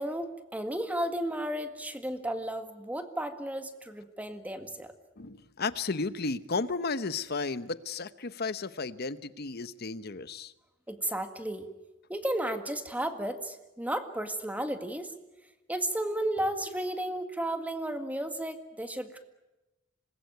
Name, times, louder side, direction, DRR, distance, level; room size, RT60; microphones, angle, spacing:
voice 1, 0.0-4.9 10.9-11.7 12.1-15.1 15.7-19.2, right 1 dB, 10° right, 7 dB, 1.8 m, -33 dB
voice 2, 5.2-10.5, left 4 dB, 50° left, 13 dB, 1.0 m, -33 dB
26.5 x 20.5 x 9.4 m, 1.0 s
head